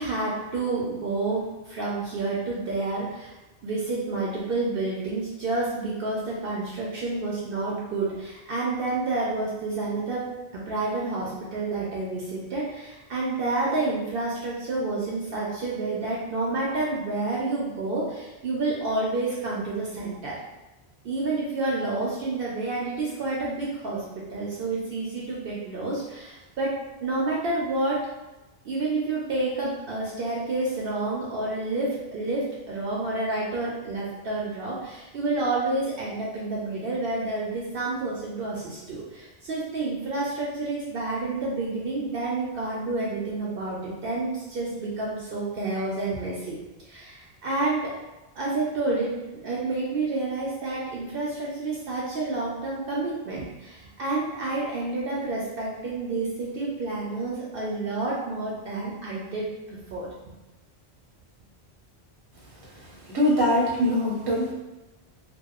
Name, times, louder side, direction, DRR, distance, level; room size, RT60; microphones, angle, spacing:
voice 1, 0.0-3.3 3.6-10.2 10.5-20.4 21.0-26.7 27.0-28.0 28.6-46.6 46.9-47.9 48.3-49.1 49.4-60.1, right 2 dB, 65° right, -5 dB, 0.7 m, -29 dB
voice 2, 63.0-64.5, left 1 dB, 25° right, -6 dB, 0.7 m, -22 dB
2.7 x 2.2 x 2.4 m, 1.0 s
omnidirectional pair, 1.1 m